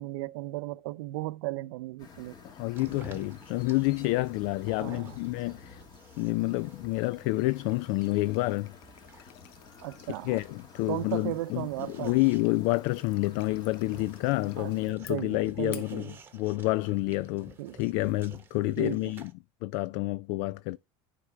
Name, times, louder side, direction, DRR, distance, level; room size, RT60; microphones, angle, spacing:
voice 1, 0.0-2.3 4.7-5.1 9.8-10.4 10.9-12.2 14.6-16.2 17.6-17.8 18.8-19.0, right 18 dB, 90° right, 0.6 m, -36 dB
sound 1, 2.0-14.9, left 4 dB, 30° left, 1.9 m, -52 dB
voice 2, 2.4-5.8 6.2-8.7 9.2-9.3 10.2-19.3 19.6-20.8, left 20 dB, 60° left, 0.4 m, -29 dB
sound 2, 2.7-19.3, right 4 dB, 15° right, 1.2 m, -54 dB
sound 3, 5.7-18.4, left 12 dB, 80° left, 0.8 m, -55 dB
9.9 x 5.0 x 4.4 m
cardioid pair, 150°, 13 cm